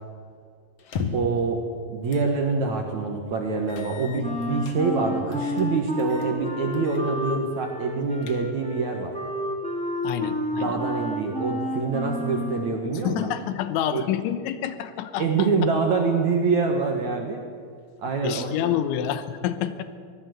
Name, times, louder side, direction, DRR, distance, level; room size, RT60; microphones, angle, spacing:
sound 1, 0.8-1.4 2.1-2.3 2.7-2.8 3.7-4.8 5.3-5.7 6.0-6.3 6.7-7.1 7.4-7.5 8.0-8.7, left 6 dB, 65° left, 1.5 m, -36 dB
voice 1, 1.1-1.6 1.9-9.1 10.6-13.3 13.9-14.0 15.2-17.5 18.0-18.5, right 4 dB, 60° right, 2 dB, 2.0 m, -25 dB
Wind instrument woodwind instrument, 4.2-12.8, left 1 dB, 5° left, 1.6 m, -31 dB
voice 2, 10.0-10.8 13.0-15.5 18.2-19.8, left 10 dB, 85° left, 11 dB, 3.4 m, -28 dB
24.5 x 17.0 x 8.0 m, 2.1 s
omnidirectional pair, 5.4 m